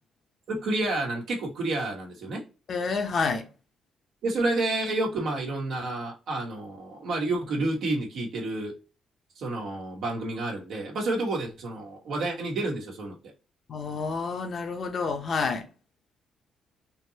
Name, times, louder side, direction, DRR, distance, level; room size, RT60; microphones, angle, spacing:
voice 1, 0.5-2.4 4.2-8.7 9.4-13.1, right 2 dB, 75° right, 1.2 m, -29 dB
voice 2, 2.7-3.4 13.7-15.6, left 4 dB, 50° left, 0.8 m, -29 dB
3.7 x 2.8 x 2.8 m
cardioid pair, 90°, 0 cm